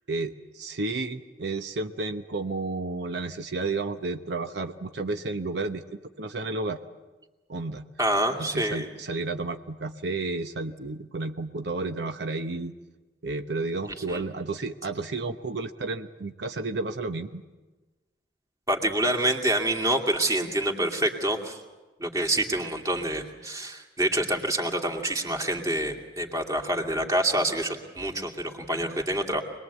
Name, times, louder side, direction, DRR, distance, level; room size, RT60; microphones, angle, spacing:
voice 1, 0.0-5.8 6.2-6.8 7.5-7.8 8.4-12.7 13.2-17.4, right 3 dB, 75° right, 7 dB, 0.9 m, -32 dB
voice 2, 8.0-8.9 14.1-14.2 18.7-21.6 22.0-29.4, right 1 dB, 20° right, 1 dB, 2.6 m, -27 dB
25.5 x 21.0 x 8.3 m, 1.2 s
head